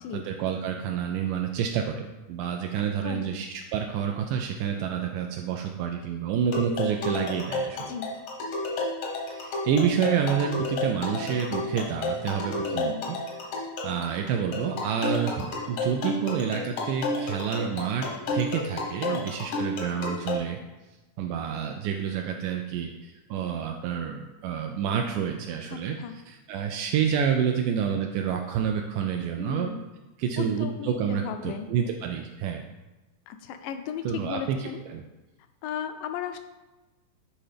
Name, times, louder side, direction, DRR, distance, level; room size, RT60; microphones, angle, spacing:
voice 1, 0.1-8.0 9.3-13.5 13.8-20.6 21.2-29.7 30.2-32.6 34.0-35.0, right 8 dB, 80° right, 3 dB, 2.0 m, -29 dB
voice 2, 2.8-3.3 7.9-8.1 12.6-13.1 19.1-19.2 19.5-19.6 25.7-26.1 29.4-29.8 30.4-31.7 33.3-34.8 35.6-36.4, left 8 dB, 80° left, 8 dB, 2.1 m, -36 dB
sound 1, 6.5-20.4, left 2 dB, 65° left, 1.3 m, -31 dB
10.0 x 4.2 x 3.4 m, 1.1 s
omnidirectional pair, 3.8 m